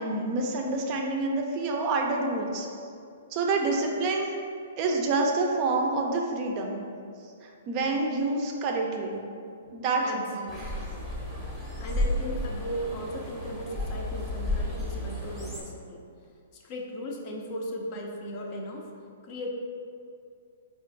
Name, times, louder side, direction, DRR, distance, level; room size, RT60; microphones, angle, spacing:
voice 1, 0.0-2.7 3.3-4.4 4.8-6.8 7.7-9.2 9.7-10.2, right 3 dB, 40° right, 1 dB, 0.4 m, -27 dB
voice 2, 10.0-10.9 11.8-16.0 16.5-18.9 19.2-19.5, equal, 40° left, 0 dB, 0.5 m, -37 dB
sound 1, 10.5-15.6, left 1 dB, 5° left, 0.7 m, -32 dB
4.3 x 2.4 x 2.5 m, 2.4 s
hypercardioid pair, 125°, 0 cm